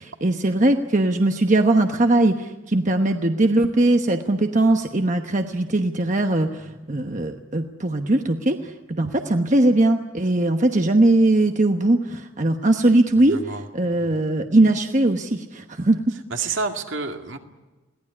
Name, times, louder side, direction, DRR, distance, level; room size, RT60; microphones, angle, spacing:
voice 1, 0.0-16.1, right 2 dB, 35° right, 5 dB, 1.1 m, -20 dB
voice 2, 13.3-13.6 14.0-14.2 16.3-17.4, right 4 dB, 65° right, 4 dB, 2.2 m, -29 dB
22.0 x 17.5 x 9.8 m, 1.2 s
head